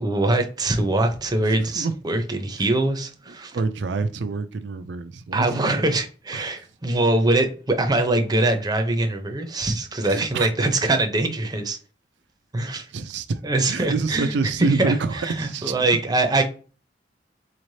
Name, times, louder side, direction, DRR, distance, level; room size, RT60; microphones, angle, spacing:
voice 1, 0.0-3.6 5.3-11.8 12.5-12.9 13.4-14.3 14.6-16.4, right 2 dB, 20° right, 0.6 m, -23 dB
voice 2, 1.5-1.9 3.5-5.8 6.3-6.4 10.0-10.5 12.9-15.7, right 4 dB, 75° right, 0.4 m, -27 dB
4.1 x 3.2 x 2.7 m
head